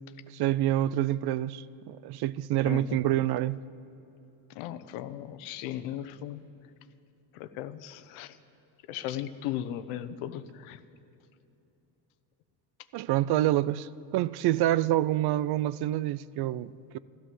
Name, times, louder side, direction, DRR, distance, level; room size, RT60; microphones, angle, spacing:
voice 1, 0.3-3.6 12.9-17.0, right 14 dB, 55° right, 0.5 m, -27 dB
voice 2, 2.6-3.0 4.5-6.4 7.3-8.4 8.9-10.8, left 11 dB, 85° left, 0.9 m, -37 dB
13.5 x 13.0 x 7.7 m
cardioid pair, 100°, 48 cm